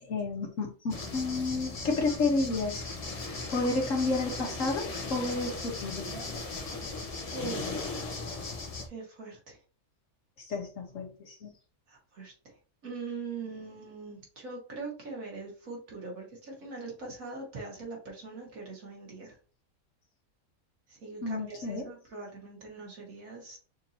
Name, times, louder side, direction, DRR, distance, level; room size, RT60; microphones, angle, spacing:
voice 1, 0.0-2.9 3.5-6.1 10.5-11.5 21.2-21.8, left 3 dB, 60° left, 0 dB, 1.4 m, -31 dB
sound 1, 0.9-8.9, left 3 dB, 35° left, 0.6 m, -37 dB
voice 2, 7.3-7.9 8.9-9.6 11.9-12.6 12.8-19.4 20.9-23.6, right 3 dB, 65° right, -2 dB, 2.1 m, -42 dB
6.3 x 2.8 x 2.8 m, 0.38 s
omnidirectional pair, 1.5 m